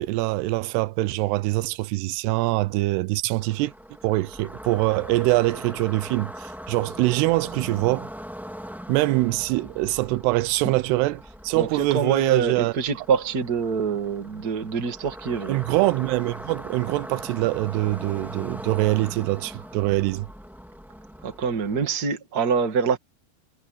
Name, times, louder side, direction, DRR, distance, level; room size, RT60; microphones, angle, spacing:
voice 1, 0.0-3.7 4.0-8.1 8.9-12.7 15.5-20.3, right 20 dB, 90° right, 2.7 m, -24 dB
sound 1, 3.4-21.8, equal, ahead, 0.9 m, -40 dB
voice 2, 11.5-15.6 21.2-23.0, right 5 dB, 30° right, 1.9 m, -25 dB
omnidirectional pair, 4.7 m